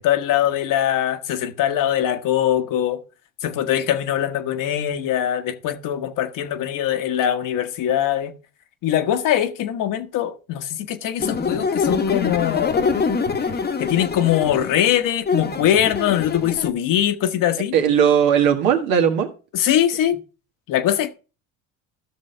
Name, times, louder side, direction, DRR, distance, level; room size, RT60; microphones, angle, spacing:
voice 1, 0.0-3.0 3.4-8.3 8.8-13.0 13.8-17.7 19.5-20.2 20.7-21.1, left 11 dB, 60° left, 1.2 m, -22 dB
sound 1, 11.2-16.7, left 5 dB, 25° left, 1.1 m, -24 dB
voice 2, 17.7-19.3, right 8 dB, 75° right, 1.8 m, -17 dB
13.5 x 6.2 x 3.3 m
supercardioid pair, 95°, 36 cm